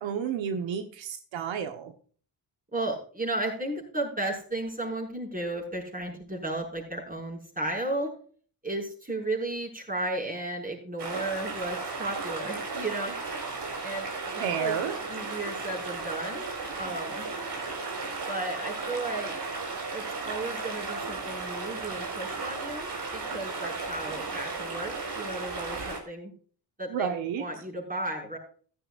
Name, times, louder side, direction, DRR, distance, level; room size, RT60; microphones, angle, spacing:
voice 1, 0.0-1.9 14.4-14.9 26.9-27.4, right 7 dB, 85° right, 7 dB, 1.3 m, -31 dB
voice 2, 2.7-8.1 8.6-13.2 13.8-14.8 15.1-16.5 16.8-17.3 18.3-19.3 19.9-26.3 26.8-28.4, right 2 dB, 20° right, 0 dB, 5.9 m, -34 dB
sound 1, 11.0-26.0, right 3 dB, 65° right, 4.6 m, -35 dB
14.5 x 12.0 x 2.5 m, 0.44 s
cardioid pair, 65°, 44 cm